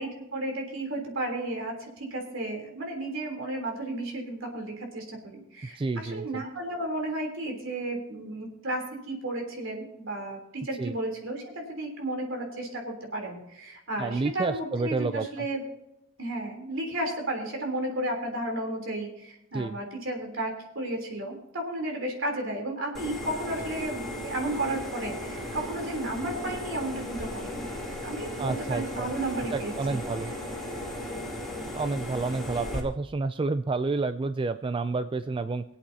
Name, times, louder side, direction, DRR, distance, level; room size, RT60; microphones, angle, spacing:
voice 1, 0.0-15.6 16.2-27.7 28.0-30.0, right 1 dB, 70° right, 2 dB, 3.5 m, -33 dB
voice 2, 5.8-6.4 10.8-11.0 14.0-15.5 19.5-19.8 28.4-29.1 29.5-30.3 31.7-35.6, right 3 dB, 25° right, 11 dB, 0.3 m, -29 dB
sound 1, 22.9-32.8, left 1 dB, ahead, 2.5 m, -36 dB
23.0 x 8.5 x 2.8 m, 0.85 s
head